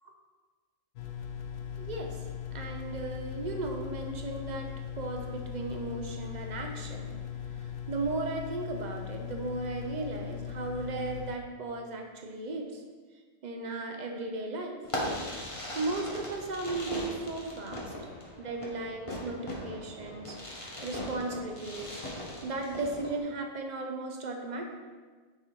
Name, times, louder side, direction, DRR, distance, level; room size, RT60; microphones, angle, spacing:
sound 1, 1.0-11.4, left 8 dB, 75° left, 0.9 m, -39 dB
voice 1, 1.8-2.1 2.5-4.7 5.0-7.2 7.9-12.8 13.4-14.8 15.7-17.9 18.4-22.0 22.4-24.7, right 3 dB, 40° right, 3 dB, 0.7 m, -36 dB
Fireworks, 14.8-23.2, left 1 dB, 30° left, 0.9 m, -39 dB
6.2 x 4.2 x 4.8 m, 1.4 s
omnidirectional pair, 1.4 m